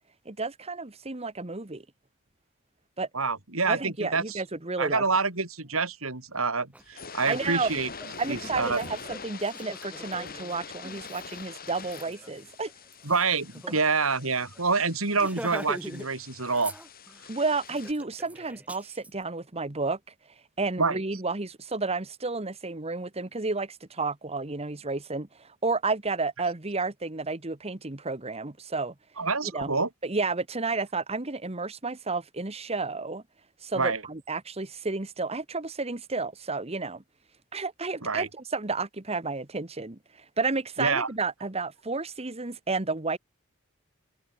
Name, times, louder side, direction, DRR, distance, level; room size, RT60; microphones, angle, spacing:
voice 1, 0.2-1.8 3.0-3.1 3.7-5.0 7.3-7.7 8.2-12.7 15.2-15.3 17.3-20.0 20.6-28.9 29.4-29.7 30.0-33.2 33.6-37.0 37.5-43.2, right 3 dB, 30° right, 1.4 m, -31 dB
voice 2, 3.1-4.4 4.8-7.9 8.3-8.8 13.0-16.7 20.8-21.0 29.2-29.9 33.8-34.0 38.0-38.3 40.8-41.1, right 4 dB, 85° right, 4.3 m, -27 dB
Laughter, 6.7-6.8 7.2-13.8 14.1-14.3 14.5-14.7 15.1-16.1 16.4-17.2 17.6-19.1, right 1 dB, 5° right, 3.7 m, -43 dB
sound 1, 6.8-17.9, left 5 dB, 45° left, 4.1 m, -44 dB
head